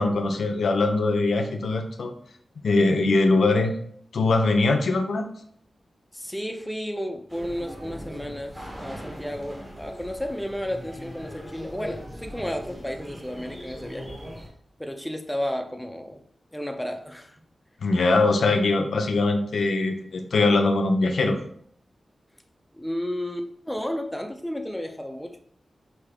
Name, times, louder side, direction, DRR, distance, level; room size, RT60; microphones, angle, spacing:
voice 1, 0.0-2.1 2.6-3.7 4.1-5.3 17.8-21.4, left 3 dB, 75° left, 5 dB, 0.6 m, -22 dB
voice 2, 6.1-14.1 14.8-16.2 16.5-17.4 22.7-25.4, equal, 5° left, 4 dB, 0.5 m, -32 dB
sound 1, 7.3-14.5, equal, 15° right, 0.9 m, -40 dB
5.1 x 2.8 x 3.4 m, 0.63 s
wide cardioid pair, 145°, 0 cm